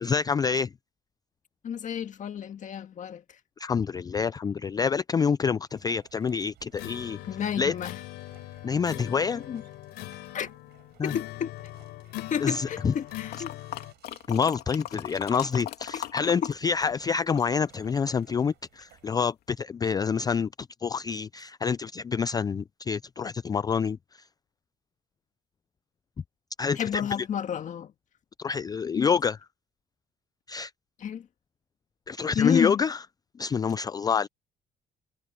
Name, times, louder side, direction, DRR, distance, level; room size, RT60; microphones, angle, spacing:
voice 1, 0.0-0.7 3.6-7.2 7.6-7.7 8.6-9.4 11.0-11.1 12.4-12.9 14.3-20.5 20.8-24.2 26.6-27.0 28.4-29.4 30.5-30.7 32.1-33.0 33.4-34.3, left 6 dB, 25° left, 0.3 m, -27 dB
voice 2, 1.6-3.2 7.3-8.0 9.3-9.6 10.3-10.5 11.0-11.5 12.3-13.5 16.4-16.5 26.8-27.9 28.9-29.1 31.0-31.3 32.4-32.8, left 8 dB, 50° left, 1.7 m, -30 dB
sound 1, 5.7-19.2, right 15 dB, 75° right, 7.2 m, -61 dB
sound 2, 6.7-13.9, left 17 dB, 85° left, 3.8 m, -41 dB
sound 3, 13.3-16.6 16.8-18.3 18.8-18.9, left 12 dB, 70° left, 2.7 m, -38 dB
cardioid pair, 110°, 17 cm